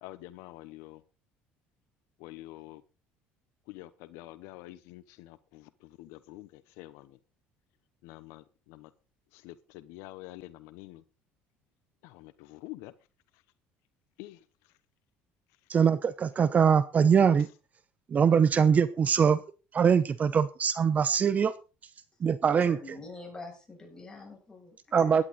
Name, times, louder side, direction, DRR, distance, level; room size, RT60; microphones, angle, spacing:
voice 1, 0.0-1.0 2.2-2.8 3.7-7.2 8.0-8.9 9.3-11.0 12.0-12.9 14.2-14.4, left 17 dB, 85° left, 0.9 m, -47 dB
voice 2, 15.7-17.5 18.1-19.4 19.7-21.5 22.2-22.8 24.9-25.2, right 7 dB, 35° right, 0.8 m, -23 dB
voice 3, 22.5-25.2, left 3 dB, 15° left, 7.4 m, -45 dB
16.5 x 11.0 x 4.1 m
cardioid pair, 110°, 4 cm